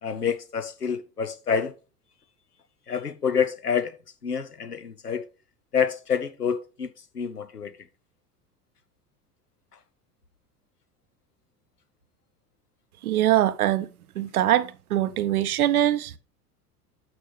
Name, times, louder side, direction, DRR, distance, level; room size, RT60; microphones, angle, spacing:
voice 1, 0.0-1.8 2.9-4.0 4.2-5.3 5.7-7.7, left 7 dB, 90° left, 0.9 m, -27 dB
voice 2, 13.0-13.9 14.2-16.2, right 13 dB, 70° right, 0.7 m, -23 dB
9.5 x 6.5 x 3.2 m
figure-of-eight pair, 80°, 45 cm